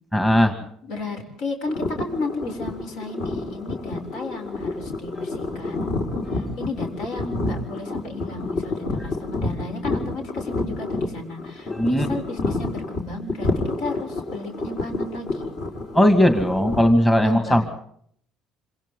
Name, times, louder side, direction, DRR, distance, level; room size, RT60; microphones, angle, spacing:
voice 1, 0.1-0.5 6.2-6.6 11.7-12.1 15.9-17.6, equal, 10° left, 6 dB, 2.3 m, -18 dB
voice 2, 0.8-6.0 6.3-15.5 17.2-17.7, left 3 dB, 75° left, 5 dB, 7.2 m, -33 dB
sound 1, 1.7-16.8, left 2 dB, 50° left, 5.2 m, -29 dB
27.5 x 27.5 x 3.9 m, 0.65 s
cardioid pair, 160°, 0 cm